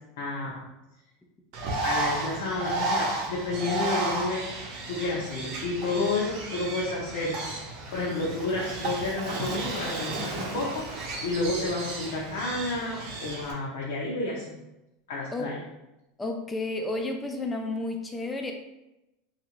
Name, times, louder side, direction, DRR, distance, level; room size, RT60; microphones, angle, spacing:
voice 1, 0.2-0.7 1.8-4.5 4.9-14.6 15.1-15.5, left 2 dB, 75° left, -5 dB, 0.7 m, -31 dB
Bird, 1.5-13.5, right 2 dB, 45° right, 0.6 m, -33 dB
voice 2, 16.2-18.5, left 2 dB, 10° left, 3 dB, 0.3 m, -31 dB
2.9 x 2.5 x 2.9 m, 0.94 s
supercardioid pair, 165°, 0 cm